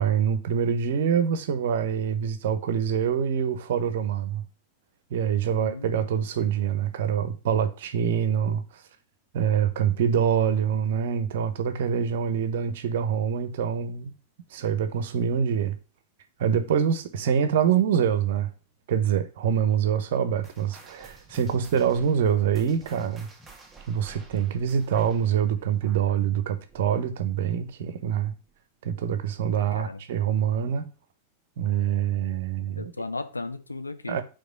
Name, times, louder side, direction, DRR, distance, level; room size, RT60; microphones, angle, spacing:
voice 1, 0.0-4.4 5.1-8.8 9.3-14.1 14.5-15.8 16.4-18.5 18.9-23.3 23.9-28.3 28.8-30.9 31.6-32.9 34.1-34.2, right 8 dB, 55° right, 1.1 m, -25 dB
voice 2, 5.5-6.1 29.5-30.0 32.8-34.2, left 3 dB, 80° left, 0.8 m, -36 dB
sound 1, 20.4-27.3 27.6-27.9 28.5-28.6 29.4-29.5, right 4 dB, 5° right, 1.7 m, -50 dB
5.2 x 4.5 x 6.1 m
figure-of-eight pair, 90°, 0 cm